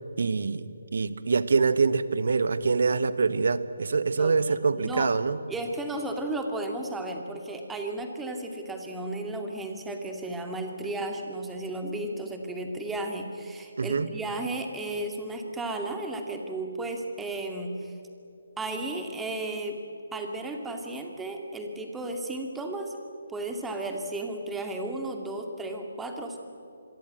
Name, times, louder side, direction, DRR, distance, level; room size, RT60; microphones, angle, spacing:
voice 1, 0.2-5.4 13.8-14.1, right 4 dB, 55° right, 14 dB, 1.4 m, -25 dB
voice 2, 4.2-5.1 5.5-18.0 18.6-19.8 20.1-23.0 23.3-26.4, right 2 dB, 5° right, 3 dB, 2.4 m, -34 dB
27.5 x 22.5 x 7.8 m, 2.8 s
figure-of-eight pair, 145°, 0 cm